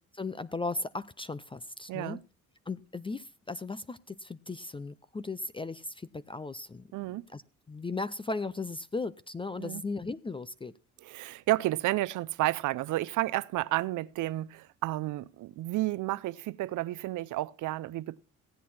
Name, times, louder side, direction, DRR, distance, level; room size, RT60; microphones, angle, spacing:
voice 1, 0.1-2.2 2.7-7.4 7.7-10.7, left 3 dB, 15° left, 0.5 m, -37 dB
voice 2, 1.9-2.2 6.9-7.2 9.6-9.8 11.0-18.2, right 17 dB, 80° right, 0.6 m, -31 dB
15.5 x 8.4 x 4.2 m
cardioid pair, 90°, 30 cm